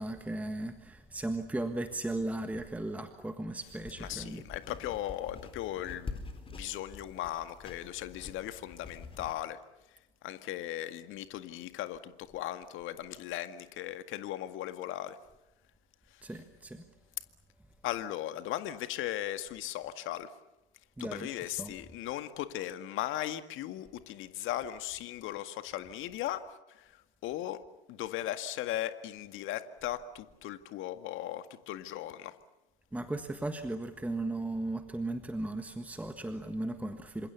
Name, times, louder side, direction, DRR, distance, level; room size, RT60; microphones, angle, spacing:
voice 1, 0.0-4.5 16.2-16.9 21.0-21.7 32.9-37.3, right 2 dB, 5° right, 8 dB, 1.5 m, -36 dB
sound 1, 3.7-9.3, left 4 dB, 15° left, 4.1 m, -46 dB
voice 2, 4.0-6.2 6.5-9.6 10.2-15.2 17.8-20.3 21.0-26.9 27.2-27.6 27.9-32.4, left 13 dB, 40° left, 10 dB, 2.0 m, -37 dB
28.5 x 26.5 x 7.1 m, 0.99 s
figure-of-eight pair, 90°, 31 cm